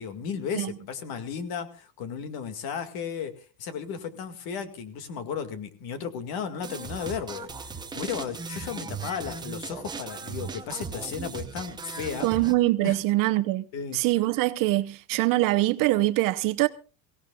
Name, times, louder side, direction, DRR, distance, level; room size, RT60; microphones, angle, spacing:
voice 1, 0.0-7.5 7.9-12.3 12.8-13.0 13.7-14.0, left 7 dB, 50° left, 2.1 m, -34 dB
sound 1, 6.6-12.5, right 5 dB, 10° right, 0.7 m, -37 dB
voice 2, 12.2-13.6 13.9-16.7, right 17 dB, 45° right, 0.9 m, -23 dB
23.5 x 17.0 x 2.3 m
cardioid pair, 175°, 46 cm